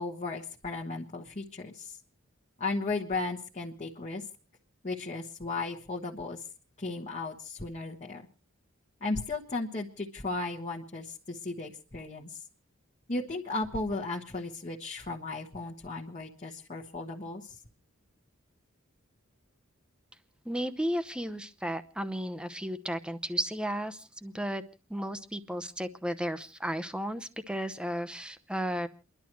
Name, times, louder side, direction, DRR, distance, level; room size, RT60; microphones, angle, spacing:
voice 1, 0.0-2.0 2.6-4.2 4.8-6.5 6.8-8.2 9.0-12.4 13.1-17.6, left 3 dB, 35° left, -2 dB, 1.3 m, -35 dB
voice 2, 20.4-24.6 24.9-28.9, equal, 5° right, 9 dB, 0.8 m, -34 dB
29.5 x 11.5 x 3.1 m, 0.34 s
head